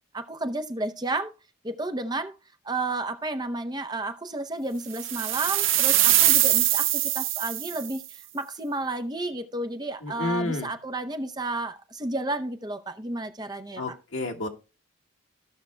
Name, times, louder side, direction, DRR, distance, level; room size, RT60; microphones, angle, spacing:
voice 1, 0.1-1.3 1.6-2.4 2.6-14.0, right 2 dB, 20° right, 0.7 m, -32 dB
sound 1, 4.9-8.0, right 13 dB, 75° right, 0.7 m, -22 dB
voice 2, 10.0-10.7 13.8-14.5, left 2 dB, 75° left, 1.7 m, -30 dB
16.0 x 5.8 x 2.2 m
head